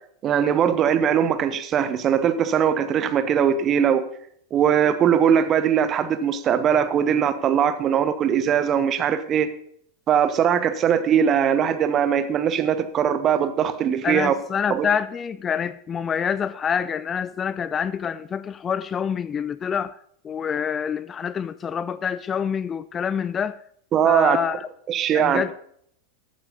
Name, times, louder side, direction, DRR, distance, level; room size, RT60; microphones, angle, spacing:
voice 1, 0.2-4.0 4.5-9.5 10.1-14.3 14.7-14.9 23.9-24.4 24.9-25.4, right 8 dB, 30° right, 1.2 m, -20 dB
voice 2, 14.0-20.0 20.2-23.6 24.0-24.7 25.1-25.5, left 7 dB, 20° left, 0.4 m, -26 dB
14.0 x 9.1 x 5.4 m
figure-of-eight pair, 90°, 0 cm